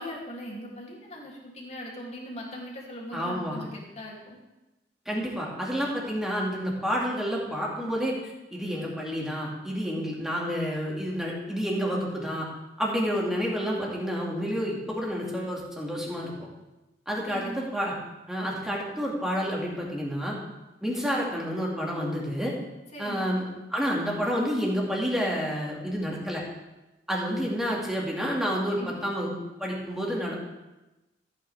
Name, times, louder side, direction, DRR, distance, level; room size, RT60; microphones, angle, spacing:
voice 1, 0.0-4.4 17.2-17.6 22.9-23.3 28.7-29.1, equal, 40° left, -4 dB, 2.8 m, -40 dB
voice 2, 3.1-3.6 5.1-8.1 8.5-12.5 12.8-16.5 17.1-18.0 18.3-20.3 20.8-22.5 23.0-23.4 23.7-26.4 27.1-29.3 29.6-30.4, equal, 5° right, -3 dB, 2.2 m, -29 dB
14.5 x 8.8 x 3.5 m, 1.0 s
head